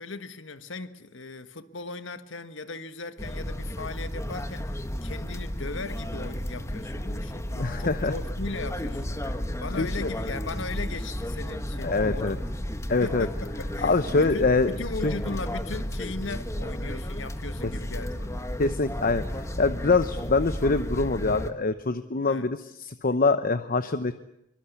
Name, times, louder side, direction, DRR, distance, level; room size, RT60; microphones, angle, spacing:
voice 1, 0.0-9.2 9.6-12.5 13.0-18.4 22.2-22.5, left 3 dB, 70° left, 1.5 m, -38 dB
sound 1, 3.2-21.5, equal, 15° left, 1.5 m, -33 dB
voice 2, 7.5-8.1 9.8-10.1 11.8-12.4 12.9-13.3 13.8-14.7 15.0-15.1 18.6-24.1, left 3 dB, 45° left, 0.9 m, -24 dB
24.0 x 24.0 x 8.3 m
head